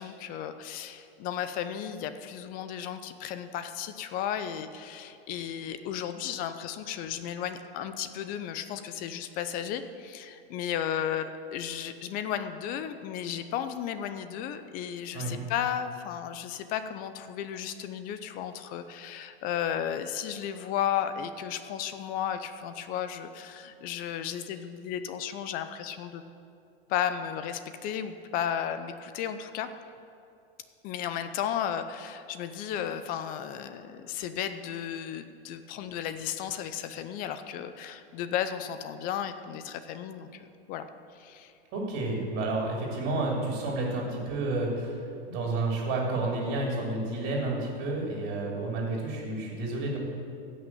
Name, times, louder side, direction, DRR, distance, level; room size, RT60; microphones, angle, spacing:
voice 1, 0.0-26.2 26.9-29.7 30.8-40.9 41.1-41.5, left 9 dB, 30° left, 10 dB, 0.6 m, -34 dB
voice 2, 41.7-44.9 45.3-50.0, right 2 dB, 35° right, -2 dB, 3.1 m, -30 dB
16.0 x 6.2 x 7.5 m, 2.6 s
hypercardioid pair, 140°, 31 cm